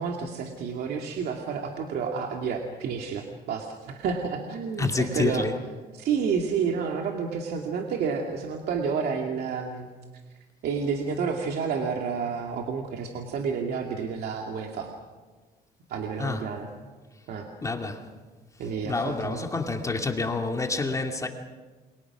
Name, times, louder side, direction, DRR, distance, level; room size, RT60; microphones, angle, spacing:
voice 1, 0.0-5.5 5.9-9.9 10.6-14.9 15.9-16.7 17.3-17.5 18.6-19.5, right 6 dB, 70° right, 2.5 m, -30 dB
voice 2, 4.8-5.5 16.2-16.4 17.6-18.0 18.8-21.3, left 3 dB, 20° left, 2.5 m, -28 dB
29.0 x 24.0 x 6.2 m
cardioid pair, 110°, 17 cm